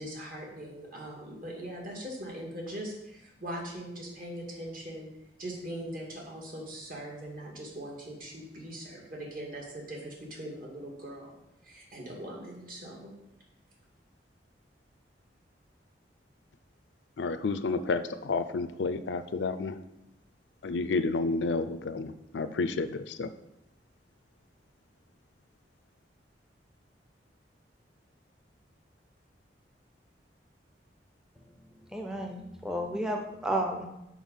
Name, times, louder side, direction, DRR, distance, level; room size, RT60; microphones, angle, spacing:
voice 1, 0.0-5.1 5.4-11.3 11.6-13.1, right 1 dB, 55° right, -1 dB, 2.2 m, -41 dB
voice 2, 17.2-19.8 20.6-23.3, left 3 dB, 80° left, 12 dB, 0.5 m, -30 dB
voice 3, 31.9-33.9, right 1 dB, 5° right, 2 dB, 0.6 m, -32 dB
6.2 x 5.6 x 5.5 m, 0.89 s
head